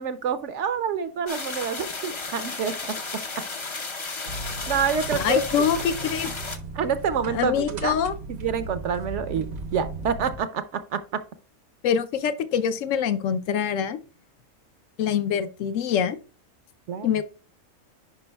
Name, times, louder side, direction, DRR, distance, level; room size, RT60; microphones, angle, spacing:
voice 1, 0.0-3.0 4.7-5.6 6.8-8.0 8.3-10.6 10.9-11.0 16.9-17.1, right 7 dB, 65° right, 12 dB, 0.8 m, -27 dB
sound 1, 1.3-6.6, left 3 dB, 35° left, 0.4 m, -33 dB
sound 2, 4.3-10.4, right 3 dB, 90° right, 1.5 m, -36 dB
voice 2, 5.2-6.3 7.3-8.1 11.8-14.0 15.0-16.2 17.0-17.2, left 8 dB, 70° left, 13 dB, 0.9 m, -24 dB
10.5 x 4.8 x 2.2 m, 0.38 s
omnidirectional pair, 1.5 m